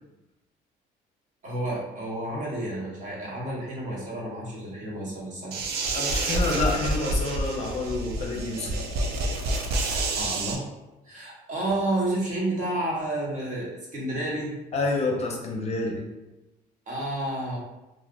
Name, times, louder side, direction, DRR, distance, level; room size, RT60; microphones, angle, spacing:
voice 1, 1.4-5.7 10.2-10.6 11.0-13.7 13.9-14.5 16.9-17.6, right 1 dB, 45° right, -4 dB, 1.2 m, -30 dB
sound 1, 5.5-10.6, right 2 dB, 70° right, 0.5 m, -28 dB
voice 2, 5.8-8.7 14.7-16.0, left 2 dB, 40° left, 0 dB, 0.6 m, -28 dB
2.5 x 2.3 x 3.7 m, 1.0 s
cardioid pair, 110°, 17 cm